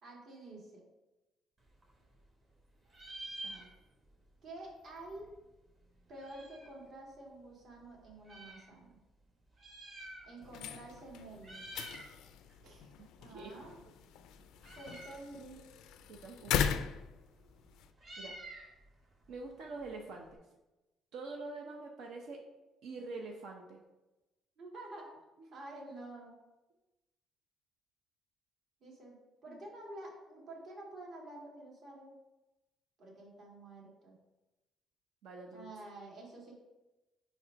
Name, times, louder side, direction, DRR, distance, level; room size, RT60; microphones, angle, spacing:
voice 1, 0.0-0.8 4.4-5.3 6.1-9.0 10.3-11.7 13.2-13.8 14.8-15.6 24.6-25.1 25.5-26.4 28.8-32.1 33.0-34.2 35.5-36.5, right 2 dB, 60° right, -3 dB, 2.1 m, -49 dB
Meow, 1.6-2.6 2.9-4.1 4.4-4.5 4.7-6.8 7.5-8.7 9.4-10.6 10.9-11.1 11.4-12.1 12.5-20.4, right 2 dB, 40° right, 1.5 m, -51 dB
sound 1, 10.4-17.9, left 8 dB, 85° left, 0.4 m, -39 dB
voice 2, 12.6-13.5 16.1-16.7 18.2-18.4 19.3-20.3 21.1-22.4 22.8-23.8 29.5-29.6 35.2-35.7, right 3 dB, 75° right, 1 dB, 0.7 m, -45 dB
4.5 x 4.2 x 5.0 m, 1.0 s
cardioid pair, 120°, 0 cm